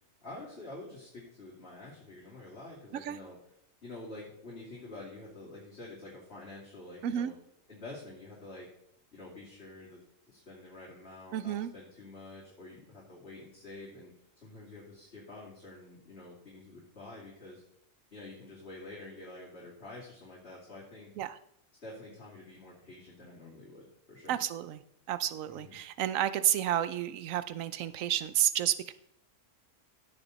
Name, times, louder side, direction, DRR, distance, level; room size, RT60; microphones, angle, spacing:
voice 1, 0.2-3.4 3.8-7.3 7.7-8.7 9.1-14.1 14.4-17.6 18.1-21.1 21.8-24.3 25.5-25.7, left 2 dB, 50° left, -6 dB, 3.1 m, -48 dB
voice 2, 7.0-7.3 11.3-11.7 21.2-21.4 24.3-24.8 25.1-28.9, right 11 dB, 80° right, 14 dB, 1.1 m, -31 dB
16.0 x 6.6 x 4.1 m, 0.73 s
omnidirectional pair, 1.4 m